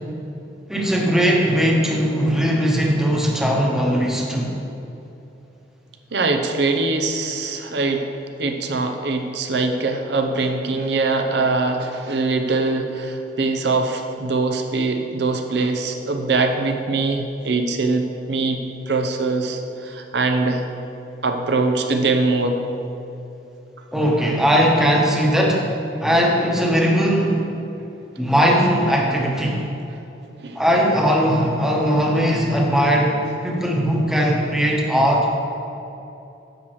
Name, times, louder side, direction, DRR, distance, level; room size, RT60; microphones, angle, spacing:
voice 1, 0.7-4.5 23.9-25.7 26.0-27.5 28.2-29.6 30.5-33.1 33.4-35.3, equal, 5° right, -2 dB, 1.0 m, -19 dB
voice 2, 6.1-8.1 8.4-18.6 18.9-20.6 21.2-22.6 30.4-30.6, right 3 dB, 65° right, 5 dB, 0.7 m, -22 dB
10.0 x 7.3 x 3.2 m, 2.9 s
head